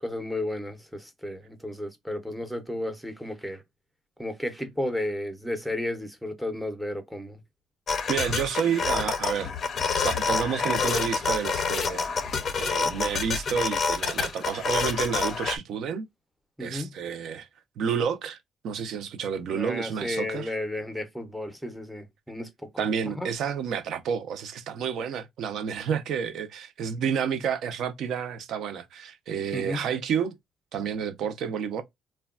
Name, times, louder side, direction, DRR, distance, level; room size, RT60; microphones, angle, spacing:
voice 1, 0.0-3.6 4.2-7.4 16.6-16.9 19.5-22.5 22.7-22.9 23.1-23.3 29.5-29.8, left 1 dB, ahead, 0.6 m, -33 dB
sound 1, 7.9-15.6, left 5 dB, 40° left, 0.5 m, -28 dB
voice 2, 8.1-9.5 10.0-12.1 12.6-16.1 16.6-17.5 17.8-18.4 18.6-20.5 22.8-30.3 30.7-31.8, right 7 dB, 65° right, 0.5 m, -30 dB
3.2 x 2.2 x 2.3 m
cardioid pair, 140°, 0 cm